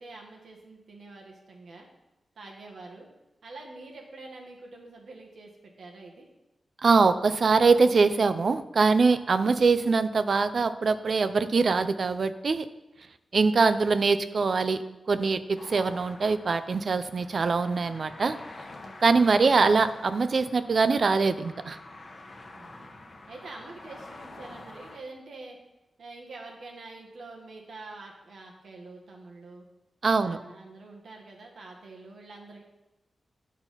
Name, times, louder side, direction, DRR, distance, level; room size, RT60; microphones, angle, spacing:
voice 1, 0.0-1.9 2.4-3.1 3.4-6.3 22.5-22.9 23.3-25.6 26.0-29.7 30.2-32.6, right 3 dB, 80° right, 0 dB, 1.7 m, -46 dB
voice 2, 6.8-12.7 13.3-14.8 15.1-18.4 19.0-21.8 30.0-30.4, right 4 dB, 55° right, 11 dB, 0.5 m, -23 dB
sound 1, 15.6-25.0, left 2 dB, 40° left, 1.0 m, -47 dB
9.6 x 4.7 x 5.7 m, 1.0 s
wide cardioid pair, 95°, 0 cm